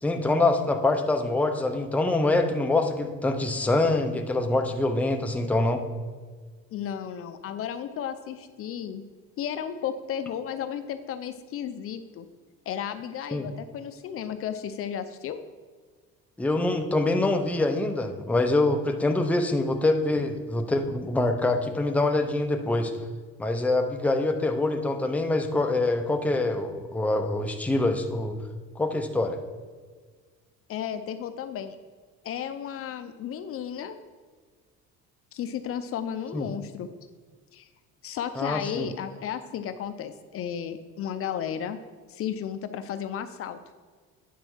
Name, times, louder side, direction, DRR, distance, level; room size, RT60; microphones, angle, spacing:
voice 1, 0.0-5.8 10.6-10.7 13.3-13.5 16.4-22.9 23.4-28.4 28.8-29.4 36.3-36.5 38.4-38.9, left 2 dB, 5° left, 4 dB, 0.7 m, -25 dB
voice 2, 6.7-9.0 9.4-12.3 12.7-15.4 20.2-20.3 30.7-31.8 32.2-34.0 35.3-36.9 37.5-37.7 38.0-41.8 42.1-43.6, left 9 dB, 50° left, 10 dB, 0.6 m, -33 dB
9.3 x 4.4 x 6.1 m, 1.6 s
cardioid pair, 135°, 29 cm